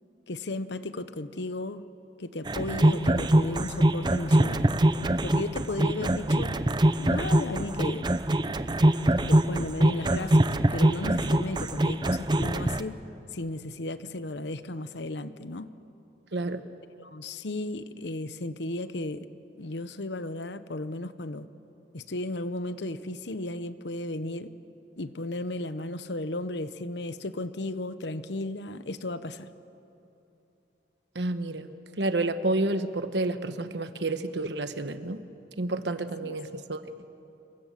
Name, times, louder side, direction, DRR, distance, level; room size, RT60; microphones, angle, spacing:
voice 1, 0.3-1.8 2.2-4.7 5.2-6.7 7.0-8.2 9.3-13.0 13.3-15.7 17.0-19.3 19.6-21.5 21.9-24.5 25.0-29.5 36.2-36.4, left 2 dB, 80° left, 13 dB, 1.0 m, -35 dB
sound 1, 2.5-12.8, right 1 dB, 25° right, 0.7 m, -23 dB
voice 2, 16.3-16.6 31.1-35.2 35.6-36.8, right 2 dB, 80° right, 10 dB, 1.2 m, -30 dB
26.5 x 23.5 x 7.6 m, 2.8 s
head